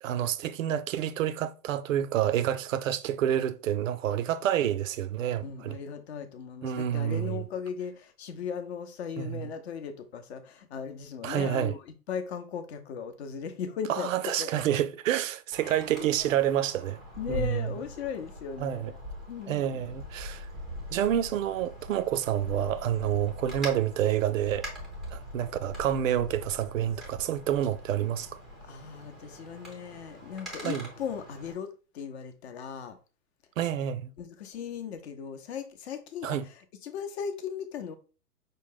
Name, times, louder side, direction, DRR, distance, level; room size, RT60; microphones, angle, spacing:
voice 1, 0.0-5.8 6.6-7.4 9.2-9.5 11.2-11.7 13.9-17.0 17.3-17.7 18.6-18.9 19.5-20.5 20.9-24.7 25.1-28.3 30.6-30.9 33.6-34.1 36.2-36.5, right 10 dB, 55° right, 0.5 m, -28 dB
voice 2, 5.3-14.5 15.6-16.1 17.2-19.0 19.3-19.9 28.7-33.0 34.2-37.9, left 7 dB, 45° left, 0.7 m, -38 dB
Wind, 15.5-31.5, equal, ahead, 0.5 m, -42 dB
5.2 x 2.2 x 3.6 m
hypercardioid pair, 125°, 47 cm